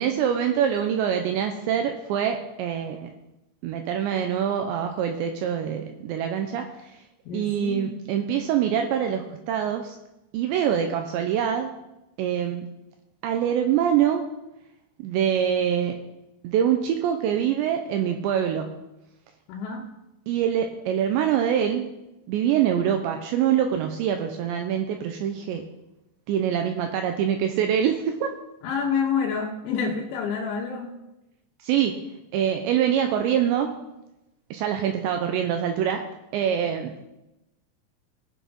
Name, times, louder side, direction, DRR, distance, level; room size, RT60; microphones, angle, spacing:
voice 1, 0.0-3.1 3.6-7.0 7.3-10.0 10.3-11.7 12.2-12.7 13.2-14.2 15.0-16.0 16.4-18.8 20.3-21.9 22.3-25.6 26.3-28.3 31.6-32.0 32.3-33.8 34.5-36.9, right 9 dB, 85° right, 5 dB, 2.6 m, -24 dB
voice 2, 7.3-7.9 19.5-19.9 28.6-31.0, left 6 dB, 75° left, -2 dB, 3.1 m, -28 dB
18.5 x 6.3 x 5.4 m, 0.95 s
omnidirectional pair, 5.9 m